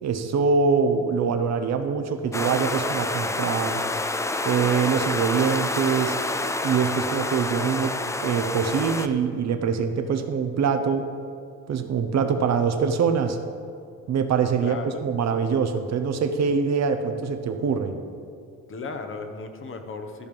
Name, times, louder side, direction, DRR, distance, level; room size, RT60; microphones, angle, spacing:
voice 1, 0.0-3.8 4.4-6.2 6.6-7.9 8.2-11.1 11.7-13.4 14.1-18.0, right 6 dB, 60° right, 7 dB, 0.9 m, -24 dB
sound 1, 2.3-9.1, left 2 dB, 10° left, 0.4 m, -28 dB
voice 2, 14.6-15.0 18.7-20.3, left 4 dB, 45° left, 6 dB, 1.0 m, -35 dB
13.5 x 5.2 x 5.3 m, 2.3 s
cardioid pair, 90°, 30 cm